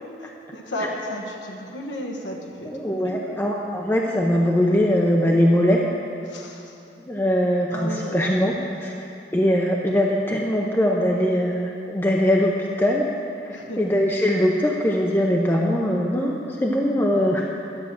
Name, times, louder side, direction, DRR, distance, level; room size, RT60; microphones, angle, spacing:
voice 1, 0.2-3.4 6.3-6.7 7.7-8.3 13.5-13.8, equal, 80° left, 0 dB, 1.2 m, -34 dB
voice 2, 2.6-5.8 7.0-9.0 9.3-13.1 13.4-17.5, equal, 15° left, -2 dB, 0.6 m, -21 dB
11.5 x 6.1 x 7.4 m, 2.6 s
head